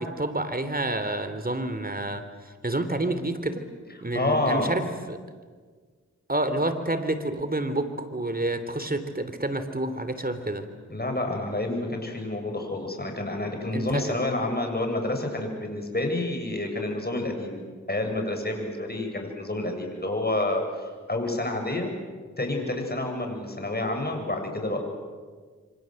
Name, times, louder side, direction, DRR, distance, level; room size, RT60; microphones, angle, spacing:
voice 1, 0.0-3.7 4.0-5.2 6.3-10.6 13.7-14.1, right 1 dB, 30° right, 10 dB, 3.3 m, -29 dB
voice 2, 4.1-4.8 10.9-17.6 17.9-21.9 22.4-24.8, left 2 dB, 35° left, 3 dB, 7.7 m, -29 dB
28.0 x 25.0 x 7.9 m, 1.5 s
cardioid pair, 40°, 30 cm